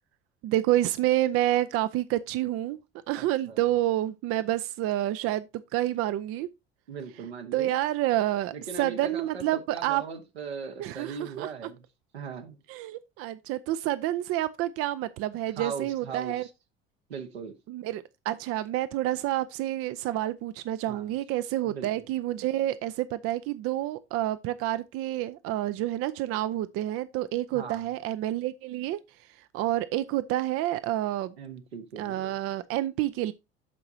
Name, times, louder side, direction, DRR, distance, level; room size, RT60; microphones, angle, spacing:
voice 1, 0.4-2.8 3.1-5.5 5.7-6.5 7.5-10.0 10.8-11.5 12.7-16.5 17.7-29.0 29.5-31.3 32.0-33.3, right 14 dB, 45° right, 0.5 m, -28 dB
voice 2, 3.1-3.6 6.9-7.8 8.5-11.8 12.1-12.6 15.6-16.5 17.1-17.5 20.9-21.0 21.6-22.0 27.5-27.8 31.4-32.3, right 5 dB, 80° right, 1.4 m, -39 dB
14.5 x 4.8 x 2.7 m
figure-of-eight pair, 60°, 31 cm